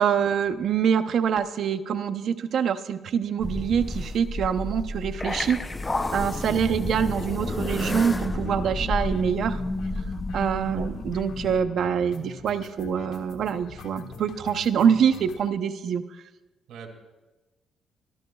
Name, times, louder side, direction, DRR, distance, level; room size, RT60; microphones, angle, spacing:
voice 1, 0.0-5.6 6.1-9.6 10.3-16.0, right 7 dB, 65° right, 10 dB, 0.7 m, -25 dB
sound 1, 3.4-11.6, left 2 dB, 20° left, 0.6 m, -31 dB
sound 2, 4.6-4.8 5.1-5.2 5.4-5.5 5.8-5.9 6.1-15.5, left 6 dB, 85° left, 1.4 m, -45 dB
voice 2, 10.7-10.8 16.7-16.9, right 7 dB, 85° right, 3 dB, 2.5 m, -44 dB
24.5 x 13.5 x 2.3 m, 1.1 s
cardioid pair, 90°, 0 cm